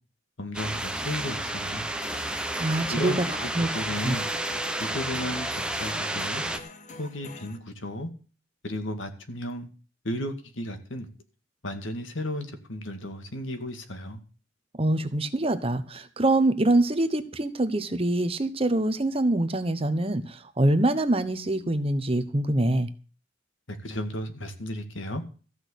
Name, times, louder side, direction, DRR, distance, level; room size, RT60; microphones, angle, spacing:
voice 1, 0.4-1.8 2.9-4.3 4.8-6.4 7.0-8.1 8.6-9.7 10.0-11.1 11.6-14.2 23.7-25.2, left 1 dB, 75° left, 7 dB, 2.0 m, -34 dB
sound 1, 0.5-6.6, right 1 dB, 5° right, 0.9 m, -31 dB
sound 2, 2.0-7.6, left 2 dB, 40° left, 1.4 m, -44 dB
voice 2, 2.6-3.2 3.6-3.7 4.0-4.2 14.8-22.9, right 1 dB, 30° right, 10 dB, 1.0 m, -24 dB
14.5 x 6.3 x 8.4 m, 0.37 s
head